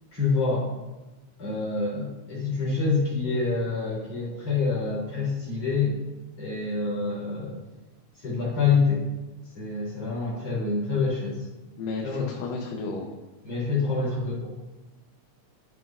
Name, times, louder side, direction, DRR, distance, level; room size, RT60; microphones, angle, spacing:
voice 1, 0.1-0.7 1.4-6.0 6.4-7.6 8.2-9.0 9.6-11.5 12.0-12.4 13.4-14.5, left 4 dB, 50° left, -8 dB, 4.0 m, -26 dB
voice 2, 11.8-13.1, left 3 dB, 85° left, 0 dB, 2.4 m, -33 dB
13.5 x 5.9 x 2.4 m, 1.1 s
omnidirectional pair, 3.7 m